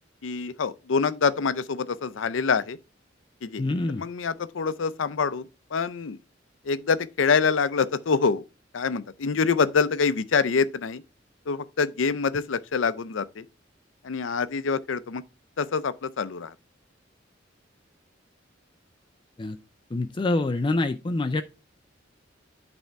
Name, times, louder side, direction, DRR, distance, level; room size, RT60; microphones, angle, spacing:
voice 1, 0.2-2.8 3.4-3.6 4.0-5.5 5.7-6.2 6.7-8.4 8.7-11.0 11.5-13.4 14.0-15.2 15.6-16.5, left 5 dB, 85° left, 0.5 m, -25 dB
voice 2, 3.6-4.0 19.4-19.6 19.9-21.4, left 2 dB, 25° left, 0.4 m, -26 dB
9.0 x 3.5 x 4.5 m
head